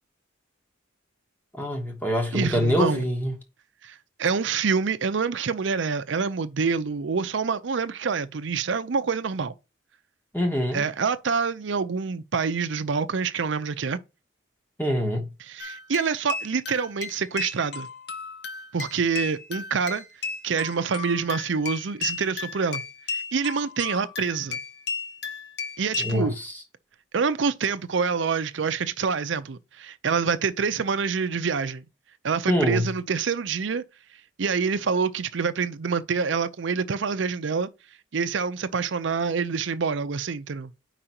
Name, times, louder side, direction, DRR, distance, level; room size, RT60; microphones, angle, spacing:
voice 1, 1.5-3.3 10.3-10.8 14.8-15.3 26.0-26.5 32.5-32.8, equal, 10° left, 1.1 m, -25 dB
voice 2, 2.3-3.0 3.8-9.5 10.7-14.0 15.4-17.9 18.7-20.0 20.4-22.8 23.1-24.6 25.8-26.4 27.1-31.8 32.2-33.8 34.4-37.7 38.1-40.7, right 5 dB, 70° right, 0.5 m, -26 dB
sound 1, 15.6-26.2, left 4 dB, 55° left, 1.1 m, -35 dB
5.1 x 4.7 x 4.3 m
head